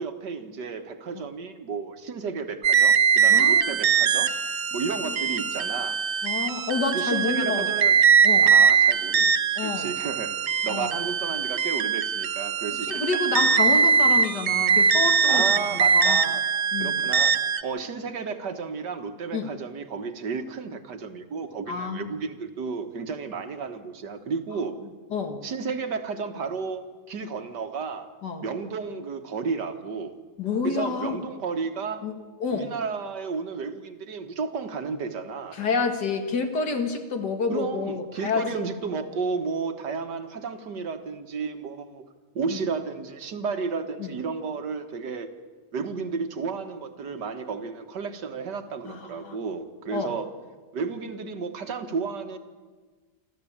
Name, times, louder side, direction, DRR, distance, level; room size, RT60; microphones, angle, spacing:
voice 1, 0.0-4.3 4.7-6.0 6.9-7.9 8.4-10.4 10.6-13.0 15.3-16.4 16.8-24.8 25.4-28.1 28.4-30.2 30.6-32.0 32.5-35.6 37.5-42.1 42.4-45.3 45.7-50.3 50.7-52.4, right 5 dB, 90° right, 7 dB, 2.1 m, -32 dB
sound 1, 2.6-17.6, right 6 dB, 50° right, 0.9 m, -21 dB
voice 2, 3.3-3.8 5.0-5.2 6.2-7.7 8.2-8.5 9.6-9.9 10.7-10.9 12.9-15.4 15.7-16.2 16.7-17.1 19.3-19.5 21.7-22.1 25.1-25.4 28.2-28.4 30.4-31.2 32.0-32.1 32.4-32.7 35.5-38.4 42.5-42.6 44.0-44.1 48.9-49.0 49.2-49.4 49.9-50.1, left 4 dB, 80° left, 6 dB, 2.5 m, -29 dB
27.5 x 13.0 x 8.7 m, 1.4 s
omnidirectional pair, 1.8 m